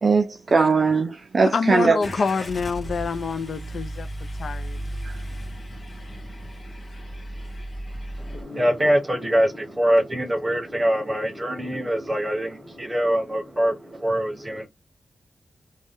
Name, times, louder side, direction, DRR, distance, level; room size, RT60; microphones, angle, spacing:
voice 1, 0.0-2.0 5.0-5.2, right 4 dB, 40° right, 0.4 m, -20 dB
voice 2, 1.4-4.1 4.4-4.8 8.3-8.7, left 5 dB, 60° left, 0.3 m, -27 dB
Car / Engine starting, 2.0-8.4, right 1 dB, 35° left, 1.2 m, -35 dB
voice 3, 8.2-14.7, equal, 15° right, 0.8 m, -24 dB
2.6 x 2.1 x 3.4 m
wide cardioid pair, 160°, 0 cm